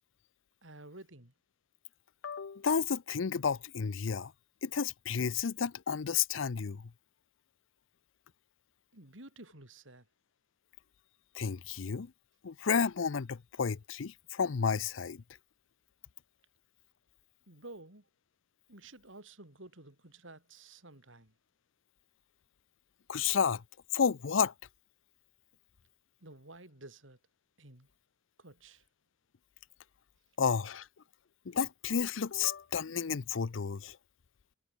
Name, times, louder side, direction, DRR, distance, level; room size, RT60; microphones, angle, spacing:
voice 1, 0.6-1.3 8.9-10.1 17.5-18.1 18.7-21.3 26.2-27.2 27.6-27.9 28.4-28.9, right 2 dB, 90° right, 5.6 m, -52 dB
voice 2, 2.2-4.3 4.6-6.9 11.3-12.1 12.4-15.2 23.1-23.6 23.9-24.5 30.4-30.9 31.5-34.0, left 6 dB, 90° left, 0.6 m, -31 dB
head